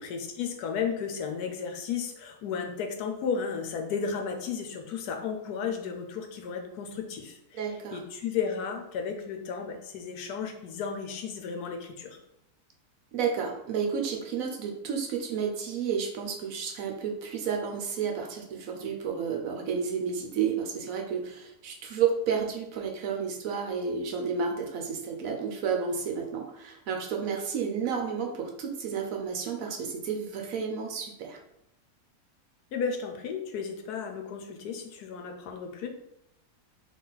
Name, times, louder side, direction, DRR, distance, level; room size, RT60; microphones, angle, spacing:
voice 1, 0.0-12.2 32.7-35.9, left 6 dB, 80° left, 3 dB, 1.2 m, -34 dB
voice 2, 7.5-8.0 13.1-31.4, right 6 dB, 65° right, 3 dB, 1.0 m, -31 dB
4.1 x 3.0 x 3.9 m, 0.81 s
omnidirectional pair, 1.7 m